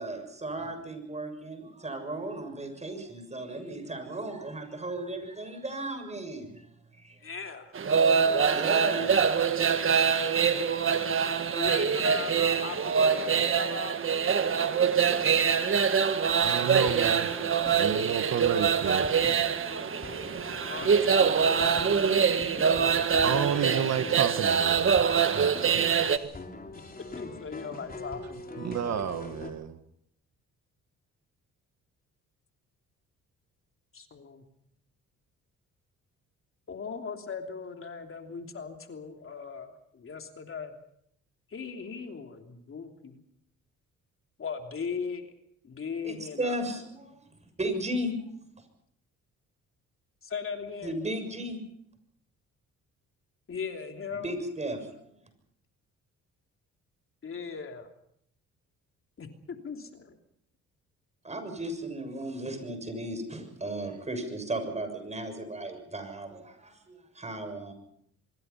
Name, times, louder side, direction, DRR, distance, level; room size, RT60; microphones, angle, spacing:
voice 1, 0.0-6.6 7.0-7.2 8.3-9.7 46.0-47.2 47.6-48.2 50.8-51.6 54.1-55.1 61.2-67.7, right 1 dB, 20° right, 6.9 m, -35 dB
voice 2, 7.2-7.7 11.5-14.0 20.6-22.4 27.2-28.7 33.9-34.4 36.7-40.8 41.5-43.2 44.4-45.3 45.6-46.5 50.2-50.9 53.5-54.3 57.2-57.9 59.2-60.2, left 5 dB, 45° left, 3.1 m, -38 dB
sound 1, 7.7-26.2, right 6 dB, 45° right, 1.6 m, -24 dB
voice 3, 10.0-10.9 16.4-17.3 17.7-19.2 23.2-25.1 25.3-26.3 28.6-29.8, right 8 dB, 60° right, 1.6 m, -32 dB
sound 2, 16.9-29.5, left 3 dB, 30° left, 3.8 m, -42 dB
25.5 x 22.5 x 5.7 m
cardioid pair, 90°, 30 cm